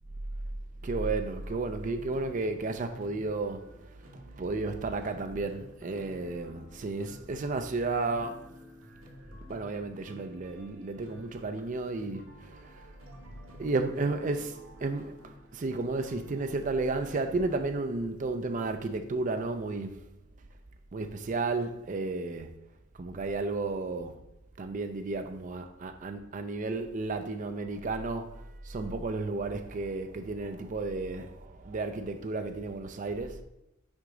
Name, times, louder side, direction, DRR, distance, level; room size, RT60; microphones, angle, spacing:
voice 1, 0.8-3.6 4.1-8.4 9.5-12.8 13.6-20.0 20.9-22.6 23.0-24.2 24.6-33.4, right 3 dB, 40° right, 0.4 m, -33 dB
sound 1, 0.9-17.7, equal, 75° right, 1.5 m, -52 dB
6.2 x 4.7 x 3.8 m
head